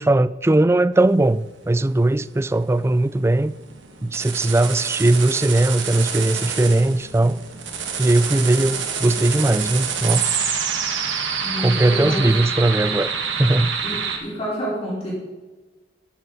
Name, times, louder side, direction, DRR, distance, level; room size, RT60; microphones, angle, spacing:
voice 1, 0.0-3.5 4.0-7.4 8.0-10.3 11.6-13.1 13.4-13.7, right 2 dB, 15° right, 0.3 m, -19 dB
sound 1, 1.2-14.2, right 6 dB, 85° right, 2.1 m, -27 dB
voice 2, 11.4-12.3 13.8-15.1, equal, 35° left, 4.6 m, -29 dB
14.0 x 12.0 x 4.1 m
head